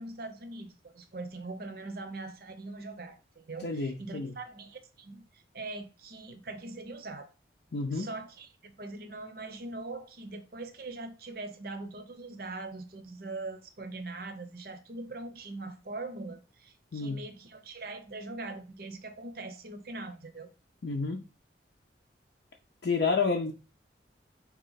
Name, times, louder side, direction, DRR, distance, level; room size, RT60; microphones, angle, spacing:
voice 1, 0.0-7.3 7.9-20.5, right 2 dB, 55° right, 0.7 m, -42 dB
voice 2, 3.6-4.3 7.7-8.1 16.9-17.2 20.8-21.3 22.8-23.5, left 4 dB, 65° left, 0.5 m, -29 dB
4.2 x 3.0 x 3.9 m
head